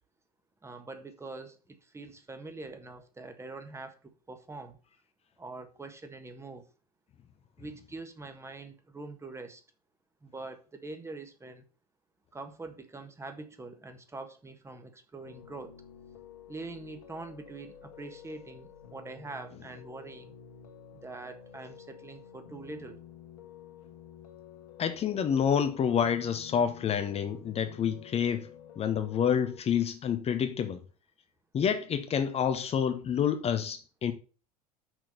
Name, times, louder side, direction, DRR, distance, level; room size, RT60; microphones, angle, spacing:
voice 1, 0.6-4.0 4.3-4.8 5.4-6.7 7.6-9.6 10.2-11.6 12.3-15.7 16.5-20.3 20.9-23.0, right 3 dB, 15° right, 1.6 m, -44 dB
Piano, 15.2-29.6, left 9 dB, 70° left, 1.7 m, -51 dB
voice 2, 24.8-28.5 28.8-30.8 31.5-34.1, left 8 dB, 30° left, 0.9 m, -28 dB
6.3 x 6.1 x 6.7 m
figure-of-eight pair, 75°, 20 cm